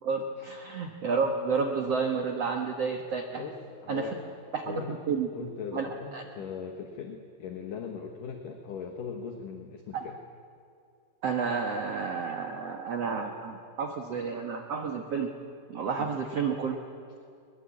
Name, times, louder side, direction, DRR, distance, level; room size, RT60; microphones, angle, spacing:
voice 1, 0.0-3.4 3.9-4.1 4.5-5.9 6.1-6.2 11.2-15.3 15.7-16.8, right 5 dB, 75° right, 4 dB, 1.4 m, -31 dB
voice 2, 3.3-5.0 5.3-10.2 16.0-16.2, left 6 dB, 60° left, 4 dB, 2.5 m, -40 dB
22.5 x 22.0 x 8.6 m, 2.5 s
omnidirectional pair, 5.0 m